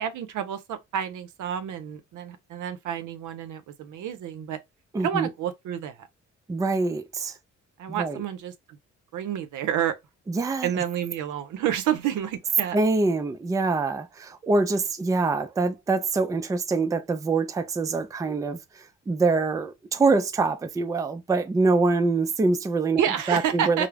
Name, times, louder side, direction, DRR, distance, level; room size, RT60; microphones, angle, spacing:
voice 1, 0.0-4.6 5.0-6.1 7.8-8.8 9.1-10.0 10.6-12.8 23.0-23.9, right 9 dB, 80° right, 0.6 m, -29 dB
voice 2, 4.9-5.3 6.5-7.3 7.9-8.2 10.3-10.7 12.7-23.0 23.3-23.9, right 3 dB, 10° right, 0.3 m, -25 dB
2.3 x 2.0 x 3.2 m
cardioid pair, 80°, 30 cm